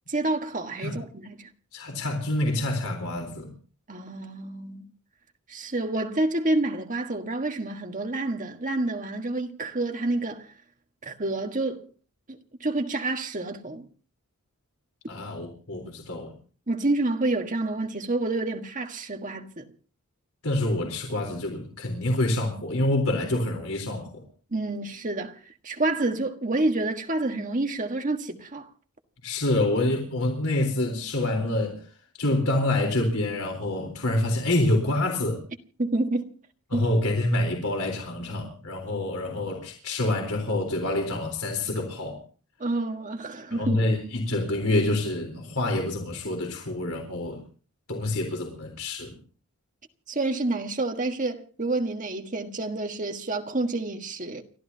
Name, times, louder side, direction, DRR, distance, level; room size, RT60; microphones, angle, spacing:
voice 1, 0.1-1.5 3.9-4.9 5.5-10.5 11.0-11.9 12.3-13.9 16.7-19.7 24.5-25.4 25.6-28.7 35.8-36.3 36.7-36.9 42.6-43.8 50.1-54.4, right 2 dB, 35° right, 1.6 m, -28 dB
voice 2, 1.7-3.5 15.1-16.3 20.4-24.2 29.2-31.8 32.2-35.4 36.7-42.2 43.5-47.4 47.9-49.2, left 1 dB, 75° left, 4.0 m, -27 dB
30.0 x 13.5 x 2.8 m
head